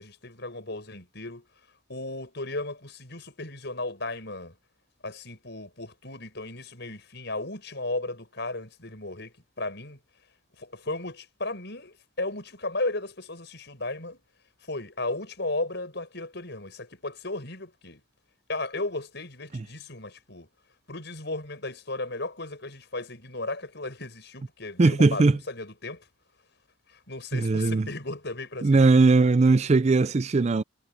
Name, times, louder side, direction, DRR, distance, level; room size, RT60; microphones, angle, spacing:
voice 1, 0.0-1.4 1.9-4.5 5.0-10.0 10.6-14.2 14.7-18.0 18.5-20.5 20.9-26.0 27.1-29.0, left 2 dB, 55° left, 7.7 m, -35 dB
voice 2, 24.8-25.4 27.3-27.9 28.6-30.6, right 3 dB, 35° right, 0.4 m, -20 dB
head